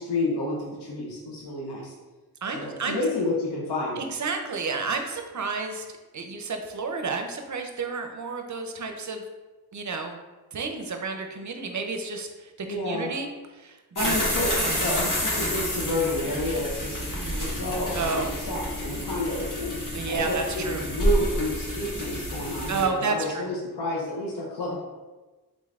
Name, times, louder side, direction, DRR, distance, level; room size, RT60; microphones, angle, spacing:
voice 1, 0.0-1.9 2.4-4.0 12.7-13.2 14.0-14.5 14.8-17.0 17.4-19.7 20.1-24.8, left 1 dB, 80° left, -3 dB, 0.7 m, -30 dB
voice 2, 2.4-3.0 4.0-5.8 6.1-9.2 9.7-10.2 10.5-13.3 13.5-14.8 17.1-17.5 17.9-18.3 19.9-20.8 22.7-23.5, right 4 dB, 50° right, 5 dB, 0.5 m, -31 dB
sound 1, 14.0-22.8, equal, 50° left, 1.0 m, -29 dB
3.7 x 3.2 x 2.4 m, 1.2 s
cardioid pair, 40°, 40 cm